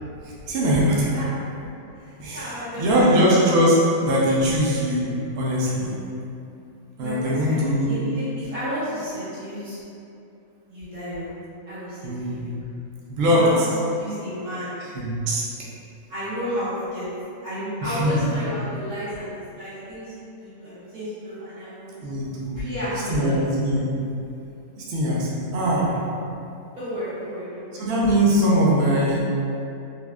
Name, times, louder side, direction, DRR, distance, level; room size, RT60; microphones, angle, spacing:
voice 1, 0.2-1.1 2.2-3.7 4.0-5.1 5.4-6.0 7.0-7.9 12.0-12.4 13.1-13.7 14.8-15.5 17.8-18.2 21.6-21.7 22.0-23.8 24.8-26.0 27.8-29.2, equal, 60° right, -6 dB, 0.7 m, -21 dB
voice 2, 2.0-3.4 7.0-7.6 7.8-9.8 10.7-11.3 11.7-12.5 13.3-13.6 14.0-14.7 16.1-17.1 17.4-21.9 22.6-23.4 26.8-27.8, equal, 85° right, -13 dB, 1.8 m, -32 dB
3.4 x 2.4 x 2.3 m, 2.6 s
omnidirectional pair, 1.5 m